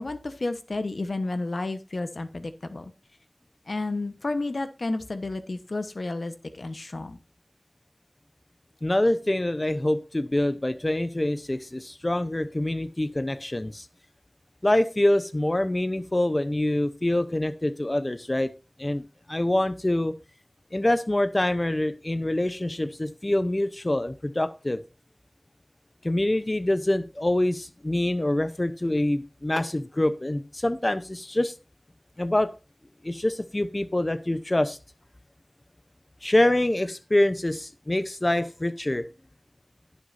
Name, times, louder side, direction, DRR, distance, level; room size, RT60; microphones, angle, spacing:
voice 1, 0.0-2.9 3.7-7.2, left 2 dB, 85° left, 8 dB, 1.1 m, -31 dB
voice 2, 8.8-13.9 14.6-18.5 18.8-19.0 19.3-20.1 20.7-24.8 26.0-31.5 32.2-32.5 33.0-34.8 36.2-39.1, left 1 dB, 35° left, 11 dB, 0.8 m, -25 dB
18.5 x 6.3 x 2.7 m, 0.30 s
wide cardioid pair, 55°, 0 cm